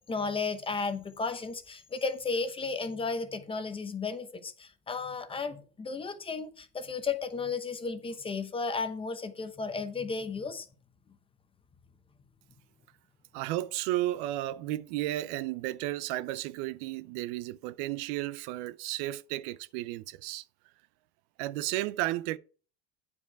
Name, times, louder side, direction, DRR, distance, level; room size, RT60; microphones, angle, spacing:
voice 1, 0.1-10.7, left 4 dB, 15° left, 0.8 m, -34 dB
voice 2, 13.3-20.4 21.4-22.4, right 15 dB, 75° right, 0.6 m, -33 dB
9.3 x 5.0 x 4.5 m
cardioid pair, 155°, 36 cm